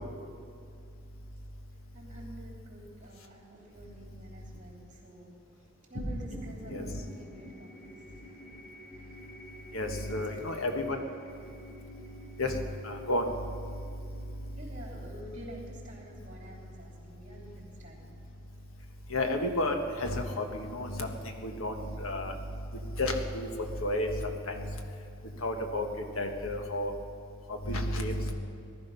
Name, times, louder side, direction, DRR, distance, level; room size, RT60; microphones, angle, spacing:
voice 1, 1.9-5.3 5.9-8.0 8.4-8.6 10.2-10.7 11.4-11.5 14.5-18.2, right 1 dB, 35° right, -2 dB, 3.5 m, -49 dB
sound 1, 5.9-16.6, equal, 50° left, 4.7 m, -46 dB
voice 2, 9.7-11.0 12.4-13.3 19.1-21.1 21.4-22.3 23.0-24.1 24.5-24.7 25.4-25.9 26.2-26.9 27.7-28.3, left 1 dB, 90° left, 4 dB, 1.5 m, -31 dB
18.5 x 13.0 x 5.6 m, 2.4 s
head